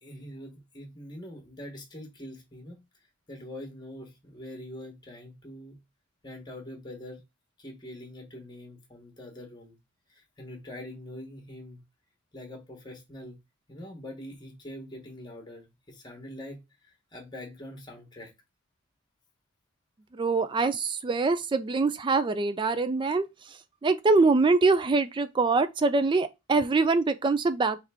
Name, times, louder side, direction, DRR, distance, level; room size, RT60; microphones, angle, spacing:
voice 1, 0.0-2.8 3.3-5.8 6.2-7.2 7.6-9.8 10.1-11.8 12.3-13.4 13.7-16.6 17.1-18.3, left 1 dB, 20° left, 1.1 m, -43 dB
voice 2, 20.2-23.3 23.8-27.8, right 3 dB, 20° right, 0.3 m, -24 dB
3.6 x 3.3 x 3.4 m
head